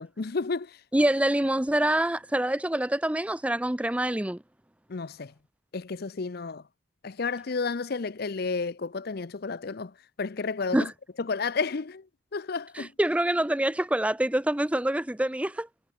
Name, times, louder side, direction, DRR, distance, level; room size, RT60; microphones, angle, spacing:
voice 1, 0.0-0.8 4.9-5.3 5.7-6.6 7.0-10.9 11.2-12.1 12.3-12.9, left 4 dB, 50° left, 0.6 m, -31 dB
voice 2, 0.9-4.4 10.7-10.9 12.7-15.7, right 1 dB, 5° right, 0.5 m, -26 dB
head